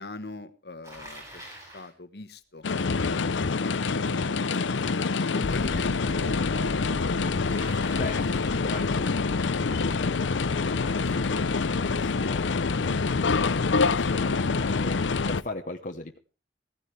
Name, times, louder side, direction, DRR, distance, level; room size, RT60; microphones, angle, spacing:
voice 1, 0.0-1.4 1.7-2.7 3.0-5.9 8.5-8.6, left 2 dB, 60° left, 11 dB, 1.3 m, -42 dB
Bicycle, 0.8-1.9 7.5-8.7, equal, 15° right, 7.3 m, -45 dB
sound 1, 2.6-15.4, left 4 dB, 90° left, 0.6 m, -26 dB
sound 2, 2.6-8.8 11.1-11.2 11.4-11.5, right 1 dB, 40° right, 3.2 m, -45 dB
voice 2, 7.9-8.2 8.6-13.4 13.7-16.2, left 2 dB, 45° left, 4 dB, 1.0 m, -39 dB
16.0 x 15.0 x 3.3 m, 0.33 s
head